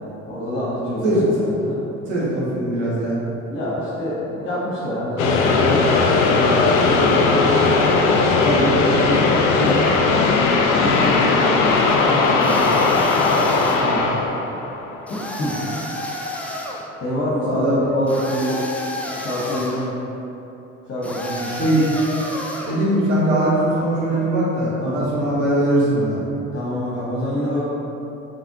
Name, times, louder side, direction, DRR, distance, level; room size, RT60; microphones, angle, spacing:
voice 1, 0.0-1.8 3.5-7.6 8.4-10.0 10.7-13.0 13.4-14.1 15.1-15.6 17.0-18.6 19.2-20.0 20.9-21.7 24.8-25.1 26.5-27.6, equal, 35° left, -8 dB, 1.1 m, -26 dB
voice 2, 2.1-3.2 17.4-17.9 21.5-21.9 22.6-26.2, right 1 dB, 70° right, -6 dB, 1.1 m, -20 dB
sound 1, 5.2-15.4, left 3 dB, 65° left, 0.5 m, -18 dB
sound 2, 12.4-14.0 15.1-16.9 18.1-19.9 21.0-22.8, left 1 dB, 5° left, 0.3 m, -30 dB
4.8 x 3.1 x 2.8 m, 2.9 s
figure-of-eight pair, 50°, 39 cm